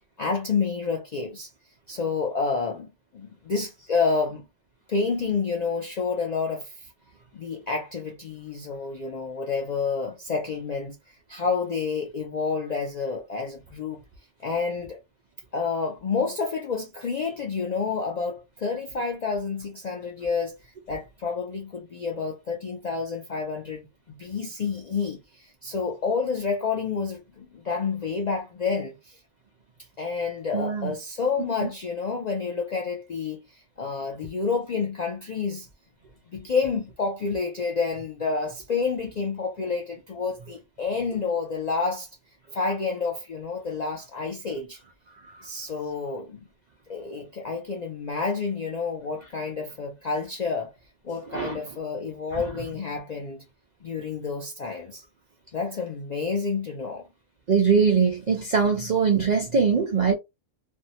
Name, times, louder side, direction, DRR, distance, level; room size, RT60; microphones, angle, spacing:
voice 1, 0.2-1.5 1.9-4.5 4.9-6.9 7.3-11.0 11.3-14.0 14.4-15.0 15.5-20.5 20.9-29.2 30.0-35.7 36.3-42.1 42.5-44.8 45.4-46.4 46.9-50.7 51.0-53.4 53.8-55.0 55.5-57.1, left 4 dB, 60° left, 0.4 m, -29 dB
voice 2, 30.5-30.9 51.3-51.6 52.3-52.4 57.5-60.1, right 5 dB, 65° right, 0.4 m, -22 dB
2.6 x 2.1 x 2.7 m
omnidirectional pair, 1.3 m